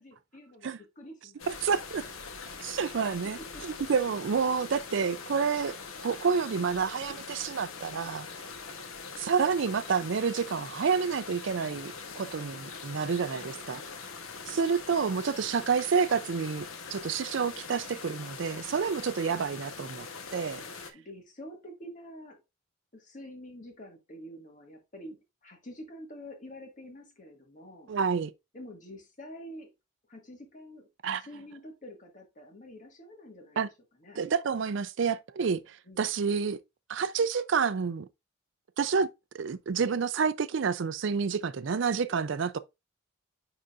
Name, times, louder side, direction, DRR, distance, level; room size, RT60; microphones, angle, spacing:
voice 1, 0.0-1.7 3.4-3.7 13.3-13.9 14.3-14.6 20.9-22.4 22.9-27.9 28.5-29.7 30.1-30.9 31.2-33.6 34.0-34.2 35.9-36.1, equal, 35° left, 1.8 m, -47 dB
sound 1, 1.4-20.9, left 5 dB, 90° left, 1.1 m, -43 dB
voice 2, 1.5-2.0 2.6-5.7 6.0-8.3 9.2-13.8 14.5-16.7 16.9-20.1 20.3-20.6 27.9-28.3 31.0-31.2 33.6-33.7 34.2-36.6 36.9-38.1 38.8-39.1 39.3-42.6, right 6 dB, 60° right, 0.4 m, -29 dB
9.9 x 3.8 x 2.5 m
head